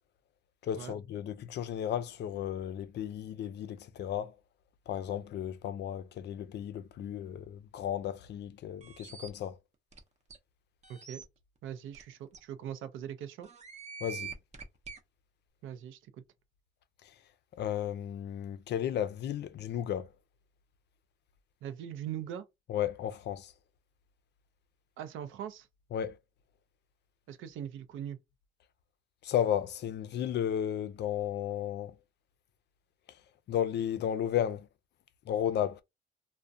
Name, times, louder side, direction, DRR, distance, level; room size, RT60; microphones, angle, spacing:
voice 1, 0.6-4.3 4.9-9.6 14.0-14.3 17.6-20.1 22.7-23.5 25.9-26.2 29.2-31.9 33.5-34.7 35.3-35.8, left 10 dB, 60° left, 0.4 m, -34 dB
sound 1, 8.8-9.3 9.9-10.0 10.3-10.4 10.8-11.2 11.9-12.0 12.3-12.4 13.4-15.0, right 6 dB, 35° right, 0.6 m, -44 dB
voice 2, 10.9-11.2 11.6-13.5 15.6-16.1 21.6-22.4 25.0-25.7 27.3-28.2, right 10 dB, 80° right, 0.5 m, -41 dB
2.3 x 2.1 x 2.5 m
cardioid pair, 90°, 20 cm